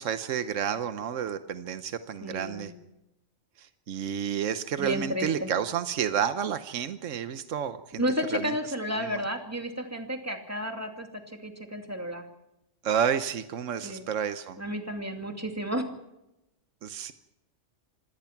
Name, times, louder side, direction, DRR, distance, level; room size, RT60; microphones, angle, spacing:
voice 1, 0.0-2.7 3.6-8.0 8.3-8.5 9.0-9.2 12.8-14.6 16.8-17.1, right 8 dB, 80° right, 11 dB, 1.3 m, -30 dB
voice 2, 2.2-2.7 4.8-5.5 8.0-12.2 13.8-14.0 14.6-15.9, equal, 10° right, 4 dB, 2.4 m, -32 dB
26.5 x 17.5 x 5.9 m, 0.90 s
omnidirectional pair, 1.3 m